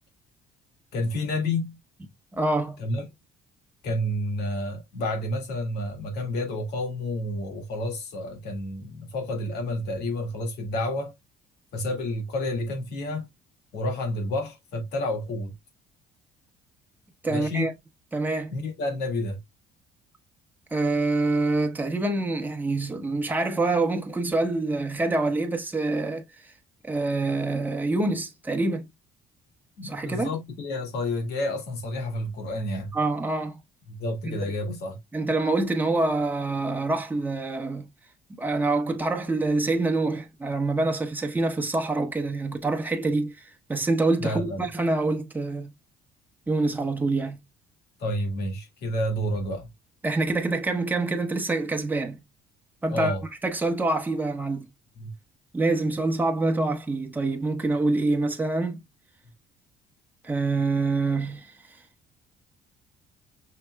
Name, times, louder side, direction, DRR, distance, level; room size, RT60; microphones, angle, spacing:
voice 1, 0.9-1.8 2.8-3.0 3.8-11.1 11.7-13.3 13.7-15.5 17.3-17.7 18.5-19.4 29.8-32.9 33.9-35.0 44.2-44.7 48.0-49.7 52.9-53.2 55.0-55.1, left 1 dB, 75° left, 1.9 m, -30 dB
voice 2, 2.3-2.8 17.2-17.7 18.1-18.5 20.7-26.5 26.8-28.8 29.8-30.3 32.9-33.6 34.2-34.4 35.1-37.9 38.4-45.7 46.5-47.4 50.0-52.2 52.8-53.1 53.4-54.7 55.5-58.8 60.2-61.8, right 2 dB, 10° right, 1.0 m, -26 dB
5.8 x 3.4 x 2.2 m
cardioid pair, 110°, 17 cm